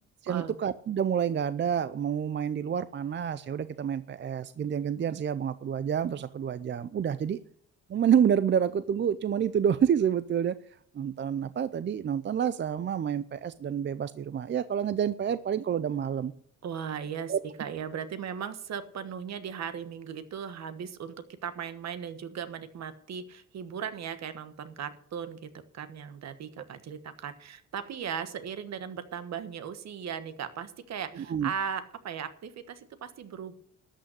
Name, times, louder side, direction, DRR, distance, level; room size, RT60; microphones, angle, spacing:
voice 1, 0.2-7.4 7.9-10.6 10.9-16.3 17.3-17.4 31.1-31.5, right 8 dB, 40° right, 14 dB, 0.5 m, -28 dB
voice 2, 16.6-17.3 17.6-21.1 21.4-33.5, right 7 dB, 60° right, 11 dB, 1.3 m, -37 dB
12.5 x 6.5 x 8.3 m, 0.62 s
cardioid pair, 90°, 30 cm